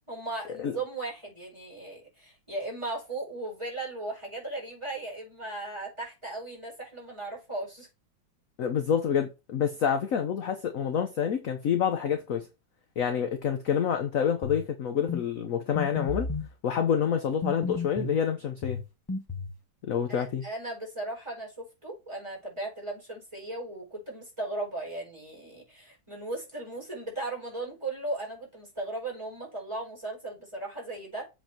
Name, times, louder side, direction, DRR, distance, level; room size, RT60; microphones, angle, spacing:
voice 1, 0.1-7.9 20.1-31.3, right 2 dB, 15° right, 4.6 m, -37 dB
voice 2, 8.6-12.5 13.0-16.3 16.6-18.8 19.8-20.4, left 8 dB, 55° left, 1.0 m, -27 dB
sound 1, 14.4-14.7 15.1-15.3 15.8-16.5 17.4-18.2 18.6-19.6, left 4 dB, 25° left, 0.4 m, -33 dB
7.8 x 4.4 x 4.5 m
omnidirectional pair, 2.2 m